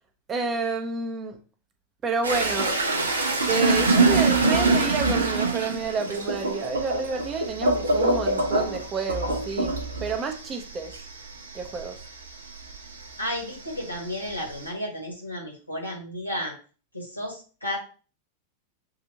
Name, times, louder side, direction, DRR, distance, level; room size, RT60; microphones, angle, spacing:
voice 1, 0.3-1.4 2.0-2.7 3.5-10.9 11.5-11.9, right 4 dB, 25° right, 5 dB, 0.8 m, -29 dB
sound 1, 2.2-13.2 13.5-14.7, right 3 dB, 75° right, 0.8 m, -24 dB
voice 2, 13.2-16.5 16.9-17.8, left 1 dB, 90° left, -1 dB, 1.5 m, -32 dB
6.6 x 2.6 x 2.9 m, 0.36 s
figure-of-eight pair, 90°, 0 cm